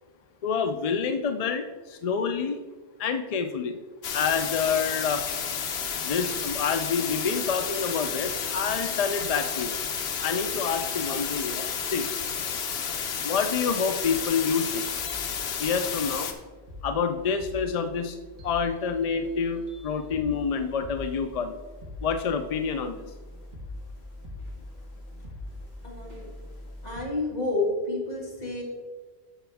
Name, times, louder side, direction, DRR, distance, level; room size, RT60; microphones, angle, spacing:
voice 1, 0.4-2.6 3.0-3.8 4.1-5.2 6.0-9.7 10.2-12.1 13.2-14.8 15.6-16.3 16.8-18.2 18.4-21.6 22.0-23.1, left 6 dB, 55° left, 8 dB, 0.4 m, -28 dB
sound 1, 4.0-16.3, left 7 dB, 75° left, 1.0 m, -31 dB
sound 2, 15.0-15.2 15.8-27.0, left 2 dB, 50° right, 1.6 m, -43 dB
voice 2, 25.8-26.3 26.8-28.6, left 2 dB, 40° left, -4 dB, 2.2 m, -29 dB
10.0 x 6.9 x 3.4 m, 1.4 s
omnidirectional pair, 1.1 m